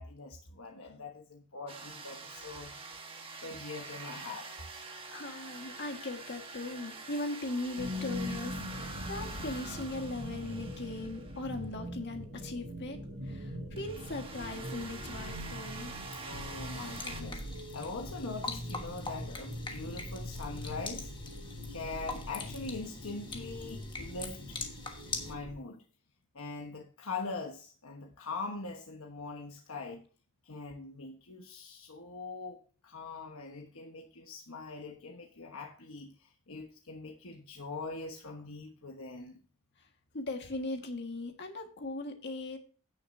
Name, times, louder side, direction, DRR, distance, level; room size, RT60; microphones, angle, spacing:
voice 1, 0.0-2.8 3.4-4.5 16.3-21.1 21.7-24.6 25.2-25.8 26.3-30.0 30.4-39.4, left 3 dB, 65° left, 2 dB, 1.2 m, -42 dB
sound 1, 1.7-11.6 13.8-17.2, right 3 dB, 25° right, 1.3 m, -46 dB
voice 2, 5.1-13.0 13.3-15.9 40.1-42.6, left 2 dB, 50° left, 4 dB, 1.7 m, -39 dB
sound 2, 7.8-25.6, equal, 75° right, 4.5 m, -42 dB
sound 3, 16.6-25.3, left 4 dB, 20° left, 1.3 m, -43 dB
16.5 x 6.4 x 2.7 m, 0.40 s
head